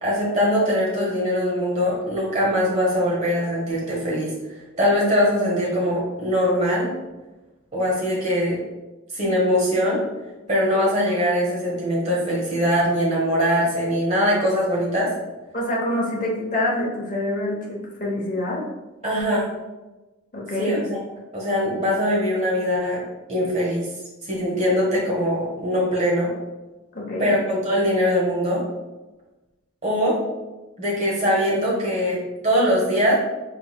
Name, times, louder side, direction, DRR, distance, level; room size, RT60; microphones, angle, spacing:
voice 1, 0.0-4.3 4.7-6.9 7.7-8.6 9.1-10.0 10.5-15.1 19.0-19.5 20.6-21.0 21.3-23.0 23.3-23.9 24.2-26.3 27.2-28.6 29.8-30.2 30.8-33.2, equal, 30° right, -5 dB, 1.3 m, -22 dB
voice 2, 15.5-18.6 20.3-20.8 26.9-27.3, left 1 dB, 40° left, -3 dB, 0.9 m, -26 dB
4.5 x 3.9 x 2.3 m, 1.1 s
head